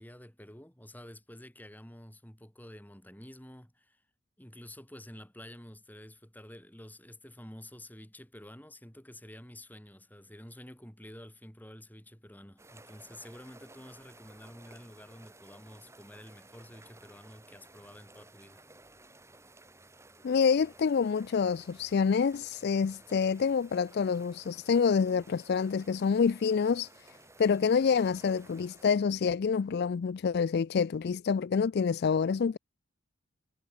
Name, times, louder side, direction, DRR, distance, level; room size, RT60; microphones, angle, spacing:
voice 1, 0.0-4.0 4.4-18.6, left 1 dB, 10° left, 3.7 m, -50 dB
sound 1, 12.6-28.9, right 2 dB, 15° right, 6.3 m, -56 dB
voice 2, 20.2-26.9 27.4-32.6, left 6 dB, 50° left, 0.4 m, -27 dB
head